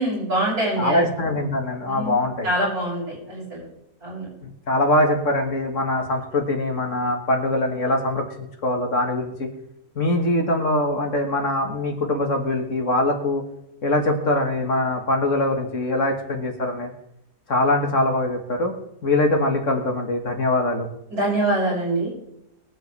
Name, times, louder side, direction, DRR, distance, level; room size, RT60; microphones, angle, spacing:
voice 1, 0.0-1.0 1.8-3.6 4.0-4.3 21.1-22.1, right 1 dB, 70° right, -6 dB, 6.6 m, -24 dB
voice 2, 0.8-2.5 4.4-9.5 10.0-13.4 13.8-16.9 17.5-18.7 19.0-20.9, left 1 dB, 50° left, 3 dB, 1.9 m, -23 dB
22.5 x 7.8 x 3.3 m, 0.81 s
omnidirectional pair, 1.7 m